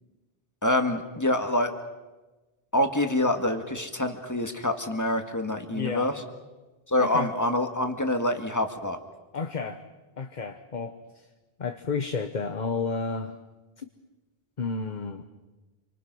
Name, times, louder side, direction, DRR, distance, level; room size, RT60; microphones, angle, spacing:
voice 1, 0.6-1.7 2.7-6.1 6.9-9.0, left 1 dB, 15° left, 6 dB, 1.9 m, -26 dB
voice 2, 5.7-6.1 7.0-7.3 9.3-9.8 10.2-11.0 11.6-13.4 13.8-13.9 14.6-15.2, left 4 dB, 45° left, 7 dB, 1.2 m, -31 dB
27.5 x 24.5 x 6.2 m, 1.2 s
omnidirectional pair, 1.0 m